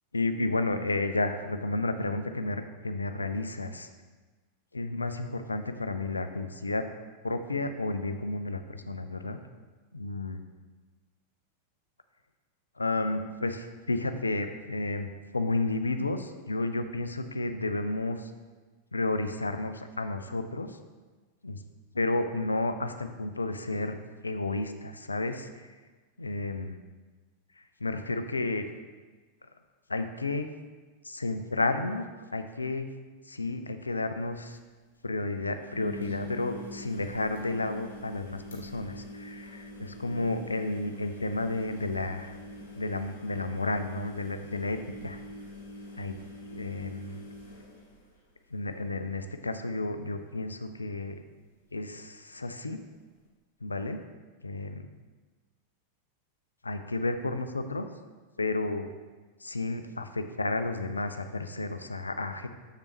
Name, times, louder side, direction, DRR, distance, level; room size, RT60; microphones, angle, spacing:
voice 1, 0.1-3.9 4.7-6.9 7.2-9.4 9.9-10.4 12.8-18.3 18.9-20.8 21.4-21.6 21.9-24.0 24.2-25.7 26.2-26.8 27.6-28.7 29.9-30.5 31.0-32.1 32.3-32.9 33.3-34.6 35.0-45.2 46.0-46.1 46.5-47.2 48.5-51.2 51.7-52.8 53.6-54.0 54.4-54.9 56.6-57.8 58.4-58.9 59.4-62.5, left 2 dB, 80° left, 9 dB, 0.4 m, -32 dB
sound 1, 34.2-34.3 34.5-34.6 35.5-48.6 49.0-49.4 49.7-49.8 51.6-51.7, left 1 dB, 60° left, 1.4 m, -44 dB
6.7 x 6.7 x 3.0 m, 1.3 s
figure-of-eight pair, 90°, 0 cm